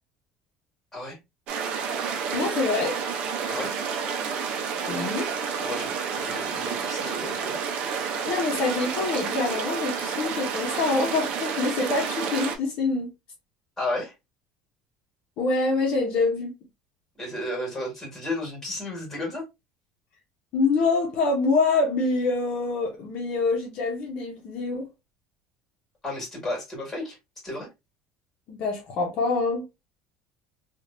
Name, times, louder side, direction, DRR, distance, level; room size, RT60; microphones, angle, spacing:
sound 1, 1.5-12.6, right 6 dB, 55° right, 0.6 m, -30 dB
voice 1, 2.3-3.0 4.9-5.3 8.3-13.1 15.4-16.5 20.5-24.9 28.5-29.6, left 3 dB, 50° left, 0.9 m, -25 dB
voice 2, 5.6-7.6 13.8-14.1 17.2-19.5 26.0-27.2 27.4-27.7, left 1 dB, 15° left, 1.8 m, -33 dB
3.3 x 2.5 x 2.5 m
cardioid pair, 155°, 2 cm